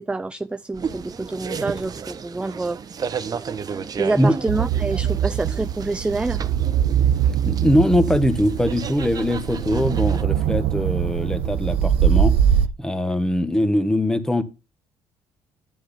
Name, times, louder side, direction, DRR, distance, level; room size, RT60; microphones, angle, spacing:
voice 1, 0.0-2.8 4.0-6.4, right 3 dB, 10° right, 0.4 m, -27 dB
sound 1, 0.7-10.2, right 6 dB, 40° right, 0.9 m, -33 dB
sound 2, 4.5-12.7, right 9 dB, 70° right, 0.7 m, -22 dB
voice 2, 7.5-12.4 12.8-14.4, left 1 dB, 5° left, 1.3 m, -21 dB
10.0 x 7.8 x 3.5 m
supercardioid pair, 75°, 10 cm